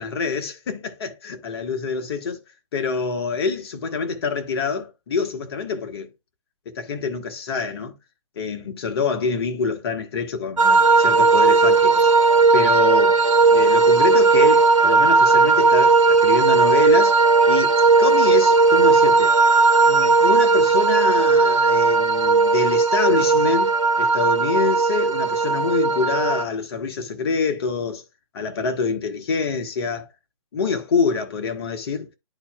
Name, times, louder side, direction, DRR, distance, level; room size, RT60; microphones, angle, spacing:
voice 1, 0.0-2.4 2.7-6.1 6.6-7.9 8.4-12.1 12.5-13.2 13.5-17.2 17.5-19.3 19.8-28.0 28.3-30.1 30.5-32.1, left 5 dB, 50° left, 1.4 m, -26 dB
sound 1, 10.6-26.4, right 4 dB, 80° right, 1.1 m, -16 dB
11.5 x 4.2 x 2.3 m
figure-of-eight pair, 125°, 17 cm